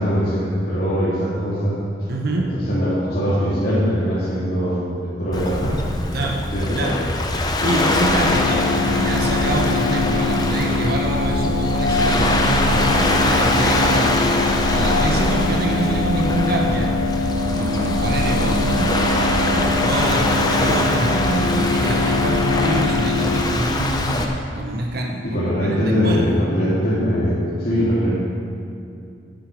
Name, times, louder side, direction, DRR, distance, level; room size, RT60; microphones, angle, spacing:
voice 1, 0.0-1.8 2.4-5.8 6.5-6.9 25.2-28.1, equal, 55° left, -10 dB, 2.3 m, -21 dB
voice 2, 2.1-2.5 6.1-6.4 6.7-7.0 7.6-14.2 14.5-16.9 17.5-18.9 19.4-26.4, right 2 dB, 55° right, 0 dB, 1.0 m, -25 dB
Waves surf, 5.3-24.3, left 1 dB, 20° left, 0.8 m, -22 dB
sound 1, 7.6-23.4, left 3 dB, 70° left, 0.8 m, -23 dB
10.0 x 9.5 x 5.1 m, 2.4 s
head